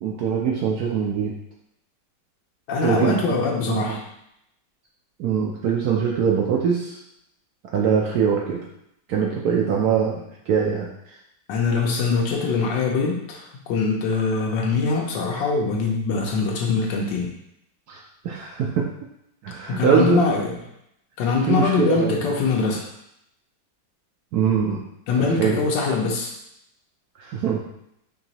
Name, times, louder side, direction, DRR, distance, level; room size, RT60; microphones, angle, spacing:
voice 1, 0.0-1.3 2.8-4.0 5.2-7.0 7.7-8.6 9.1-10.9 17.9-18.0 18.2-18.9 19.4-20.2 21.5-22.2 22.6-22.7 24.3-24.8 25.2-25.6 27.2-27.6, right 7 dB, 70° right, -2 dB, 0.9 m, -22 dB
voice 2, 2.7-4.0 11.5-17.3 19.7-20.6 21.2-22.8 25.1-26.3, left 4 dB, 75° left, -1 dB, 1.3 m, -23 dB
4.5 x 2.9 x 2.8 m, 0.78 s
omnidirectional pair, 2.0 m